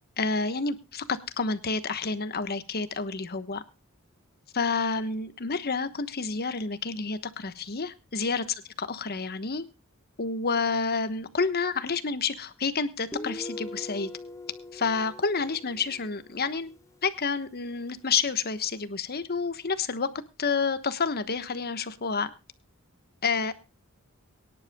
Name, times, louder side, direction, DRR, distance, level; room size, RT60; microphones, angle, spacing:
voice 1, 0.2-3.6 4.5-9.7 10.2-14.1 14.7-16.7 17.0-20.1 20.4-22.3 23.2-23.5, left 4 dB, 45° left, 11 dB, 1.2 m, -29 dB
Guitar, 13.1-16.6, left 1 dB, 15° left, 1.0 m, -41 dB
23.0 x 10.5 x 2.2 m, 0.27 s
head